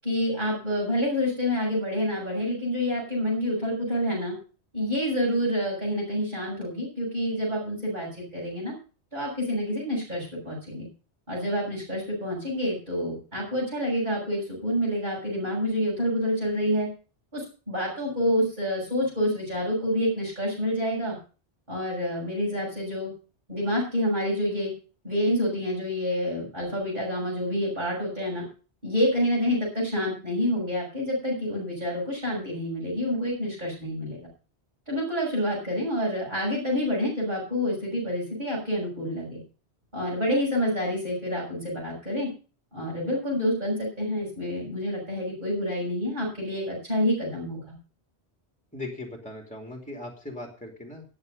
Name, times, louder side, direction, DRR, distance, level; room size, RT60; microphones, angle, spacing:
voice 1, 0.0-4.3 4.7-8.7 9.1-10.9 11.3-16.9 17.3-21.2 21.7-23.1 23.5-24.7 25.0-28.4 28.8-34.3 34.9-39.4 39.9-42.3 42.7-47.8, equal, 45° right, -6 dB, 7.2 m, -28 dB
voice 2, 48.7-51.0, left 2 dB, 5° left, 2 dB, 2.7 m, -39 dB
19.5 x 7.5 x 5.3 m, 0.37 s
omnidirectional pair, 1.1 m